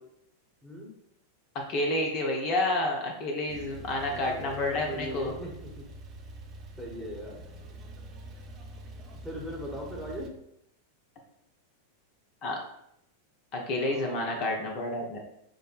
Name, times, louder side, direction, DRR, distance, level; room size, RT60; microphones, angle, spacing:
voice 1, 1.7-5.3 12.4-12.6 13.5-15.2, left 2 dB, 40° left, 1 dB, 0.8 m, -29 dB
Male speech man speaking / Car / Idling, 3.5-10.3, right 1 dB, 30° right, 0.6 m, -45 dB
voice 2, 4.1-5.8 6.8-7.4 9.2-10.3 13.8-14.4, equal, ahead, -2 dB, 1.2 m, -39 dB
6.3 x 2.1 x 2.3 m, 0.76 s
figure-of-eight pair, 90°, 0 cm